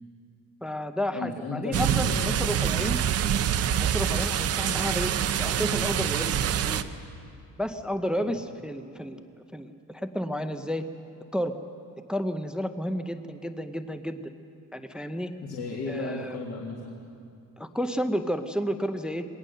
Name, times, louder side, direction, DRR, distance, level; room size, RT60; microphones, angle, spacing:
voice 1, 0.6-3.0 3.8-6.9 7.6-9.2 9.5-10.8 11.3-11.6 12.1-14.2 14.7-15.3 15.9-16.4 17.6-19.3, equal, 5° right, 8 dB, 0.5 m, -31 dB
voice 2, 1.1-2.5 8.2-8.4 15.4-17.0, left 3 dB, 45° left, -2 dB, 2.0 m, -35 dB
sound 1, 1.7-6.8, right 9 dB, 45° right, 0.7 m, -26 dB
22.5 x 18.5 x 6.6 m, 2.5 s
cardioid pair, 165°, 35 cm